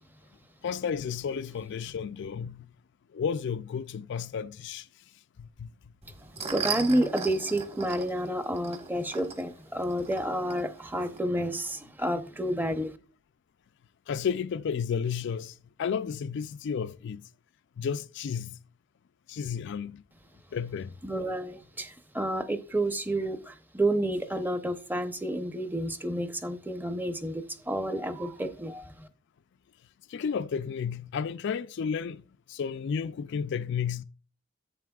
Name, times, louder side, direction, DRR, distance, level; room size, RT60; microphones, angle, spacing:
voice 1, 0.6-2.7 3.1-4.9 5.4-5.7 14.1-17.2 17.8-18.6 19.3-20.0 20.5-20.9 30.1-32.2 32.5-34.0, left 6 dB, 60° left, 0.4 m, -32 dB
sound 1, 6.0-11.2, right 5 dB, 30° right, 1.2 m, -38 dB
voice 2, 6.3-13.0 21.0-29.1, right 1 dB, 10° right, 0.7 m, -30 dB
10.5 x 8.4 x 2.3 m
head